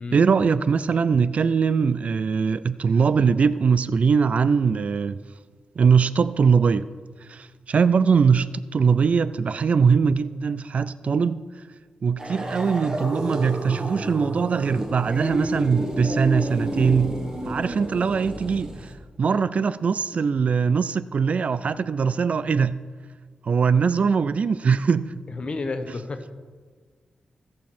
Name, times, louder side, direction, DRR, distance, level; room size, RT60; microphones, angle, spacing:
voice 1, 0.1-5.2 5.8-6.9 7.3-11.4 12.0-17.1 17.5-18.9 19.2-22.8 23.4-25.1, right 6 dB, 55° right, 0.4 m, -21 dB
sound 1, 12.2-18.9, right 1 dB, 25° right, 1.6 m, -30 dB
voice 2, 25.3-26.3, left 3 dB, 40° left, 1.1 m, -31 dB
17.0 x 6.3 x 4.3 m
wide cardioid pair, 90°, 3 cm